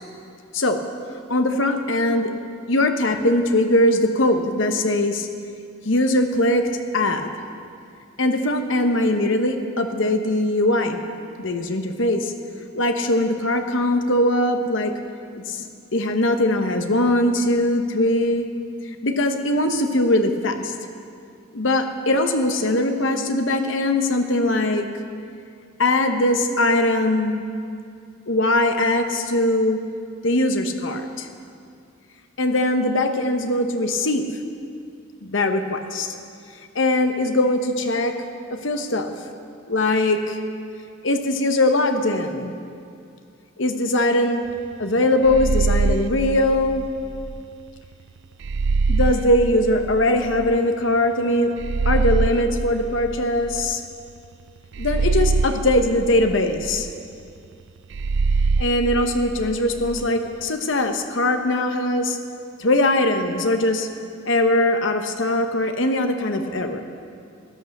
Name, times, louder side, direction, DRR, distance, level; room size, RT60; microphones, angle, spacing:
voice 1, 1.3-2.3 2.7-5.3 5.8-6.7 6.9-7.3 8.2-11.0 11.4-12.3 12.7-14.9 15.3-15.6 15.9-18.5 19.0-20.7 21.5-24.9 25.8-27.4 28.3-29.8 30.2-31.3 32.4-34.2 35.2-36.1 36.7-38.2 38.5-39.1 39.7-40.4 41.0-42.5 43.6-44.4 44.8-46.8 48.9-51.5 51.8-53.8 54.8-56.9 58.6-62.2 62.6-63.9 64.2-66.8, left 1 dB, 65° left, 6 dB, 1.1 m, -21 dB
sound 1, 45.2-47.4 48.4-50.6 51.6-53.9 54.7-56.9 57.9-60.1, right 3 dB, 60° right, 0.4 m, -24 dB
16.0 x 11.0 x 6.7 m, 2.4 s
head